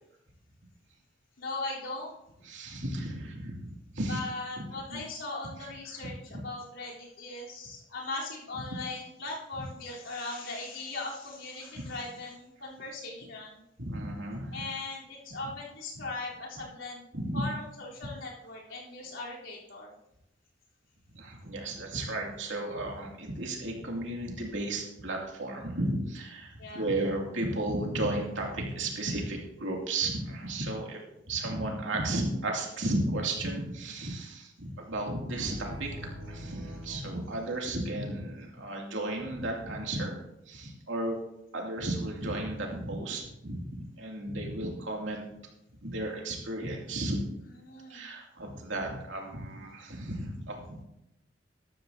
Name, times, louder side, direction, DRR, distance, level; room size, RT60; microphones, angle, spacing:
voice 1, 1.4-2.1 4.1-13.6 14.5-17.0 17.3-19.9 26.6-26.9 47.5-48.0, left 2 dB, 85° left, -4 dB, 3.8 m, -39 dB
voice 2, 2.4-4.2 4.9-5.0 5.9-6.4 11.6-11.8 13.8-14.6 16.0-16.1 17.1-17.4 18.0-18.1 21.1-31.0 31.3-40.2 40.5-41.2 41.5-45.2 45.8-47.2 47.9-50.8, right 1 dB, 75° right, 0 dB, 2.7 m, -34 dB
sound 1, 35.3-38.3, equal, 60° right, 4.5 m, -45 dB
13.0 x 12.5 x 2.9 m, 0.83 s
head